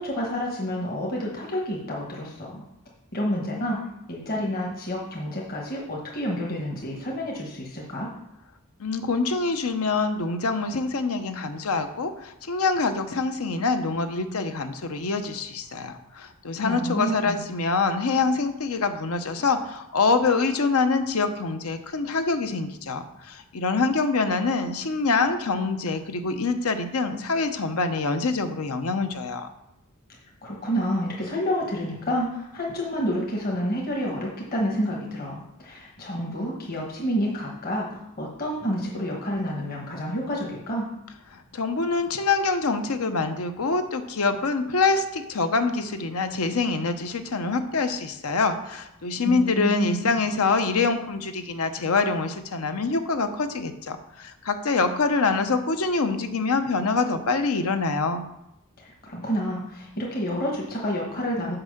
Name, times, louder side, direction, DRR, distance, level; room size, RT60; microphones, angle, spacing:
voice 1, 0.0-2.6 3.1-3.8 4.1-8.1 16.6-17.5 30.4-40.9 49.2-50.1 58.8-61.6, equal, 45° left, -2 dB, 1.3 m, -29 dB
voice 2, 8.8-29.5 41.3-58.2, left 4 dB, 85° left, 8 dB, 0.8 m, -25 dB
5.9 x 5.4 x 6.6 m, 0.84 s
head